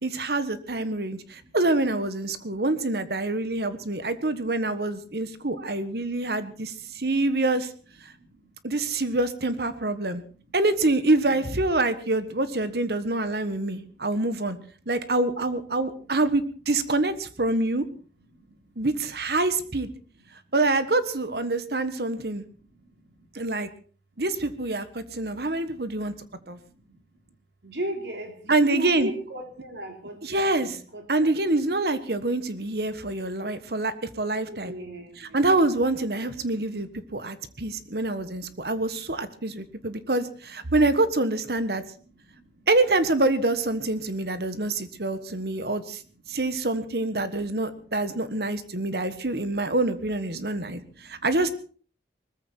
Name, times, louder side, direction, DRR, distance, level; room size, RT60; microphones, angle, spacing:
voice 1, 0.0-7.7 8.0-8.1 8.6-10.2 10.5-14.6 14.9-17.8 18.8-19.9 20.5-22.4 23.3-23.7 24.2-26.1 26.5-26.6 28.5-29.1 30.2-30.8 31.1-34.7 35.2-41.8 42.7-46.0 46.3-51.5, right 2 dB, 65° right, 12 dB, 1.4 m, -26 dB
voice 2, 27.6-31.3 34.4-35.4, right 1 dB, 85° right, 5 dB, 3.5 m, -36 dB
20.5 x 14.5 x 4.5 m, 0.41 s
head